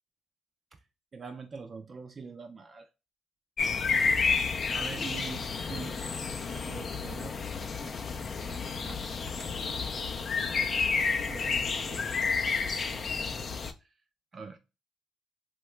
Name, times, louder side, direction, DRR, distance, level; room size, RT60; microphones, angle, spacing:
voice 1, 1.1-2.9 4.7-7.3 7.8-9.3 11.3-12.0 14.3-14.6, right 5 dB, 40° right, 0.4 m, -44 dB
sound 1, 3.6-13.7, left 5 dB, 50° left, 0.4 m, -30 dB
2.8 x 2.2 x 3.0 m
cardioid pair, 90°, 0 cm